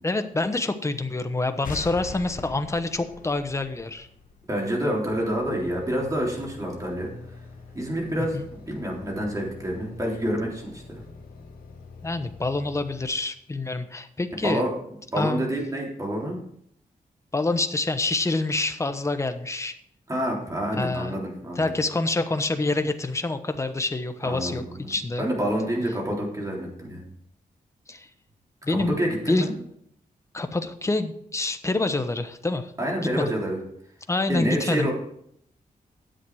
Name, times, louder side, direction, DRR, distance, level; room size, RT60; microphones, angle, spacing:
voice 1, 0.0-4.1 8.3-8.4 12.0-14.6 15.1-15.5 17.3-19.7 20.8-21.2 21.6-25.3 27.9-28.1 28.6-28.9 29.3-29.4 30.3-32.7 33.2-33.3 34.1-34.9, left 2 dB, 20° left, 9 dB, 0.9 m, -27 dB
sound 1, 1.6-5.1, left 5 dB, 65° left, 1.1 m, -41 dB
voice 2, 4.5-7.1 7.7-8.4 8.7-11.0 14.4-14.7 15.1-16.4 20.1-21.7 24.2-27.0 28.7-29.5 32.8-33.6 34.3-34.9, equal, 25° right, -2 dB, 3.5 m, -28 dB
sound 2, 5.1-13.1, left 4 dB, 90° left, 2.2 m, -45 dB
10.5 x 7.8 x 4.8 m, 0.70 s
wide cardioid pair, 105°, 15 cm